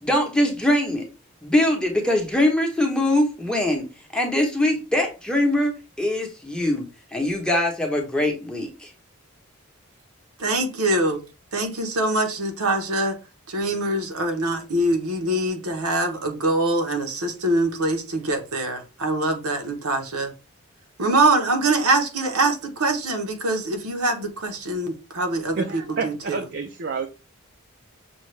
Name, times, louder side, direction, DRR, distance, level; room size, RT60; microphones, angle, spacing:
voice 1, 0.0-1.0 1.4-3.8 4.1-6.8 7.1-8.9, left 1 dB, 5° left, 0.8 m, -22 dB
voice 2, 10.4-11.2 11.5-13.2 13.5-20.3 21.0-25.6 26.0-26.4, right 2 dB, 85° right, 1.0 m, -24 dB
voice 3, 25.5-27.1, right 4 dB, 50° right, 0.5 m, -29 dB
6.3 x 2.3 x 3.2 m
head